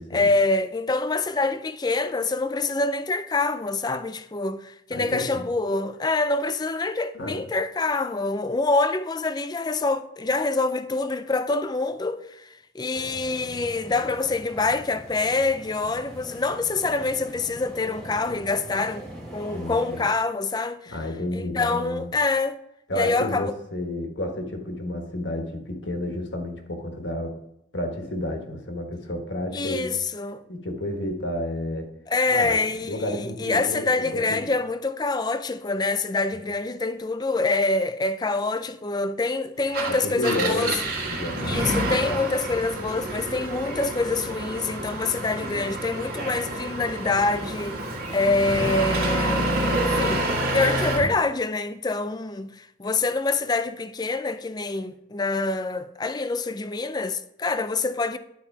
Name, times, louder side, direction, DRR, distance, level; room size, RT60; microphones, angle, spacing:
voice 1, 0.1-19.1 19.3-21.0 21.3-22.6 23.0-23.5 29.5-30.4 32.1-40.7 41.4-47.8 48.1-49.5 49.7-50.3 50.5-58.2, left 3 dB, 20° left, 0.4 m, -26 dB
voice 2, 4.9-5.5 7.1-7.4 19.5-20.1 20.9-22.1 22.9-27.4 27.7-30.0 30.5-31.9 32.3-34.5 39.9-41.7 42.1-42.2 48.6-48.7, left 1 dB, 65° left, 1.4 m, -31 dB
sound 1, 12.9-20.0, equal, ahead, 1.6 m, -42 dB
Engine, 39.6-51.1, right 1 dB, 50° right, 1.6 m, -28 dB
10.5 x 4.2 x 4.8 m
head